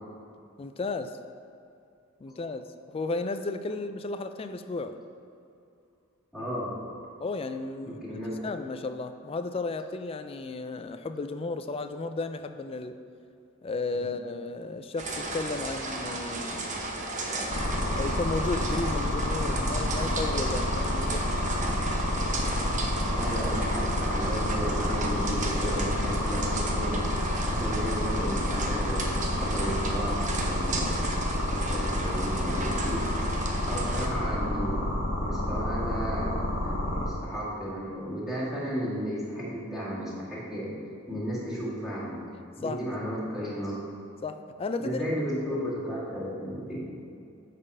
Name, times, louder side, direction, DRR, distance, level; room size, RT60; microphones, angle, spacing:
voice 1, 0.6-1.2 2.2-5.0 7.2-8.0 8.4-13.0 13.6-16.8 17.2-21.4 42.6-42.8 44.2-45.0, left 3 dB, 30° left, 9 dB, 0.3 m, -34 dB
voice 2, 6.3-6.8 7.8-8.5 13.9-14.1 23.2-27.0 27.4-30.9 31.5-33.1 33.7-34.9 35.2-40.7 41.1-42.2 42.6-43.8 44.8-46.8, equal, ahead, -10 dB, 2.0 m, -34 dB
sound 1, 15.0-34.1, right 2 dB, 40° right, 0.8 m, -35 dB
sound 2, 17.5-37.1, left 1 dB, 80° left, 1.4 m, -29 dB
8.8 x 4.2 x 5.4 m, 2.6 s
head